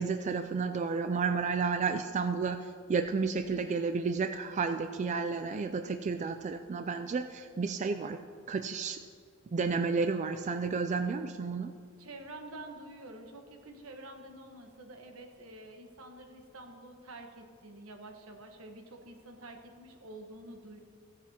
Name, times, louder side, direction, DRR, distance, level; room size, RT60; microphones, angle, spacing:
voice 1, 0.0-8.2 8.5-9.0 9.5-11.7, right 4 dB, 35° right, 8 dB, 0.3 m, -31 dB
voice 2, 12.0-20.8, right 2 dB, 80° right, 3 dB, 1.3 m, -48 dB
16.5 x 10.5 x 2.9 m, 2.1 s
head